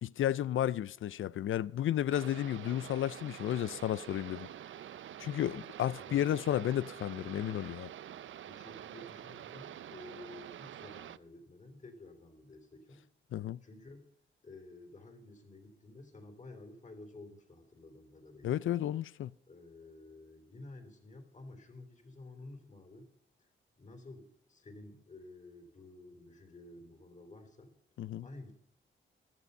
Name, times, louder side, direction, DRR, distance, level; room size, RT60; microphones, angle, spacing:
voice 1, 0.0-4.5 5.2-7.9 13.3-13.6 18.4-19.3 28.0-28.3, left 11 dB, 75° left, 0.4 m, -32 dB
sound 1, 2.1-11.2, right 10 dB, 70° right, 0.5 m, -47 dB
voice 2, 6.0-6.4 8.1-13.0 13.6-14.1 14.4-18.6 19.5-23.1 23.4-23.5 23.8-27.7 28.2-28.5, left 2 dB, 35° left, 3.3 m, -52 dB
15.0 x 12.0 x 5.4 m
cardioid pair, 75°, 21 cm